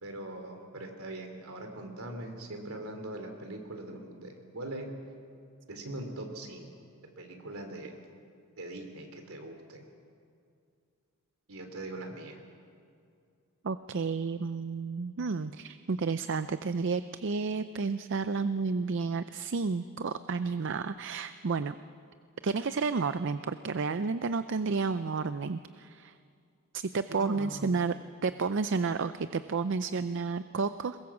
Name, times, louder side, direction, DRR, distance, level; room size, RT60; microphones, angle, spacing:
voice 1, 0.0-4.9 5.7-6.7 7.2-7.9 8.6-9.9 11.5-12.4 27.1-27.7, right 1 dB, 75° right, 4 dB, 3.4 m, -41 dB
voice 2, 13.6-21.8 22.4-26.2 26.7-27.9 28.2-31.0, right 4 dB, 55° right, 12 dB, 0.5 m, -31 dB
22.5 x 21.5 x 7.3 m, 2.4 s
head